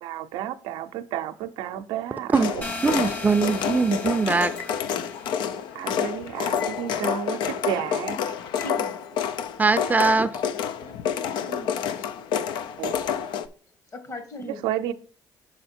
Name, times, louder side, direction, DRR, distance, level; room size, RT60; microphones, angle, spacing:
voice 1, 0.0-2.7 5.7-8.4 12.8-12.9 14.6-14.9, right 11 dB, 90° right, 9 dB, 0.5 m, -31 dB
sound 1, 2.3-13.5, left 8 dB, 80° left, 0.5 m, -29 dB
sound 2, 2.6-5.5, left 2 dB, 20° left, 1.0 m, -37 dB
voice 2, 2.8-4.5 9.6-10.3, right 4 dB, 20° right, 11 dB, 0.5 m, -21 dB
sound 3, 4.6-5.2 6.5-7.2 8.5-9.1, left 8 dB, 65° left, 0.8 m, -43 dB
voice 3, 8.6-9.0 10.8-12.1 13.9-14.8, left 1 dB, 40° left, 7 dB, 1.6 m, -40 dB
6.4 x 5.0 x 4.3 m, 0.41 s
cardioid pair, 85°, 8 cm